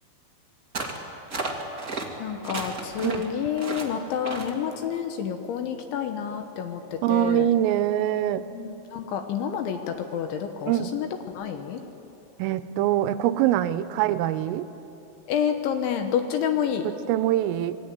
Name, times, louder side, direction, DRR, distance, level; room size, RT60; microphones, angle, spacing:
sound 1, 0.7-1.0 1.3-2.1 2.4-3.2 3.6-3.9 4.2-4.5, right 3 dB, 35° right, 1.3 m, -32 dB
voice 1, 2.2-7.5 8.5-11.1 11.3-11.8 15.3-16.9, left 8 dB, 75° left, 6 dB, 3.3 m, -29 dB
voice 2, 7.0-8.4 10.7-10.9 12.4-14.7 16.8-17.8, right 12 dB, 85° right, 12 dB, 3.4 m, -24 dB
27.0 x 21.0 x 9.4 m, 3.0 s
omnidirectional pair, 5.9 m